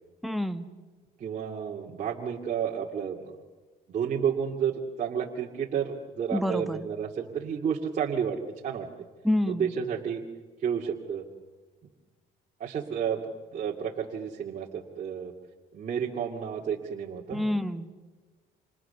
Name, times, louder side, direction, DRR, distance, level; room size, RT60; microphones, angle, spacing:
voice 1, 0.2-0.7 6.3-6.8 9.2-9.7 17.3-17.9, left 1 dB, ahead, 7 dB, 1.4 m, -28 dB
voice 2, 1.2-3.2 3.9-8.9 9.5-10.2 10.6-11.3 12.6-13.2 13.5-15.3 15.7-17.4, right 7 dB, 45° right, -2 dB, 2.4 m, -31 dB
30.0 x 27.0 x 6.9 m, 1.3 s
cardioid pair, 110°, 17 cm